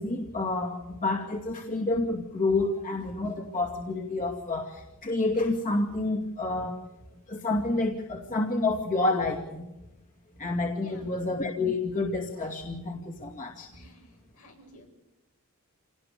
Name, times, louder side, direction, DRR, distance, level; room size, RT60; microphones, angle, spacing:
voice 1, 0.0-6.7 7.3-9.7 10.4-13.7, left 2 dB, 40° left, 1 dB, 2.4 m, -29 dB
voice 2, 10.7-11.1 13.7-14.9, left 1 dB, 80° left, 1 dB, 7.8 m, -51 dB
28.0 x 18.5 x 6.8 m, 0.98 s
head